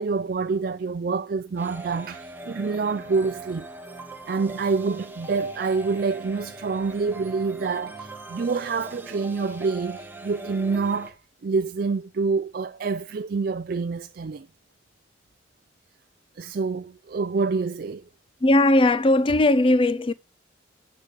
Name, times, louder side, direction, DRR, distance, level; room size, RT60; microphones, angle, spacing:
voice 1, 0.0-3.7 4.3-14.5 16.4-18.1, right 4 dB, 50° right, 0.4 m, -27 dB
sound 1, 1.6-11.1, right 2 dB, 10° right, 1.0 m, -41 dB
voice 2, 18.4-20.1, left 1 dB, 25° left, 0.5 m, -18 dB
10.5 x 4.9 x 6.1 m
head